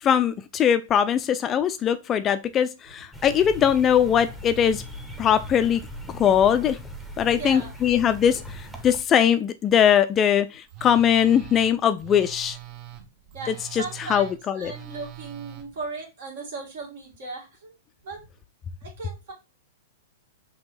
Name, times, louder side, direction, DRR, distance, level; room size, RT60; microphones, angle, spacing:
voice 1, 0.0-4.8 5.2-5.8 6.2-6.8 7.2-12.6 13.5-13.8 14.1-14.7, left 9 dB, 30° left, 0.4 m, -21 dB
sound 1, 3.1-9.0, equal, 5° right, 0.8 m, -39 dB
voice 2, 7.4-7.7 13.0-17.7 18.0-18.2 18.8-19.3, right 4 dB, 65° right, 1.9 m, -37 dB
Telephone, 10.7-15.6, right 14 dB, 40° right, 0.6 m, -42 dB
5.2 x 2.9 x 3.1 m
hypercardioid pair, 110°, 0 cm